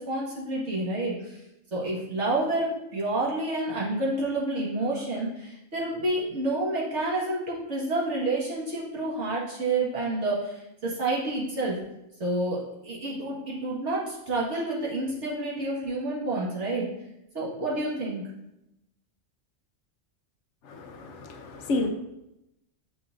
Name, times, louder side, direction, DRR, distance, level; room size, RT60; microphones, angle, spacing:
voice 1, 0.0-1.4 1.7-11.8 12.2-16.9 17.3-18.2, right 2 dB, 70° right, -5 dB, 1.9 m, -29 dB
voice 2, 20.7-21.9, left 2 dB, 75° left, 5 dB, 1.0 m, -30 dB
7.0 x 5.8 x 2.5 m, 0.88 s
omnidirectional pair, 1.2 m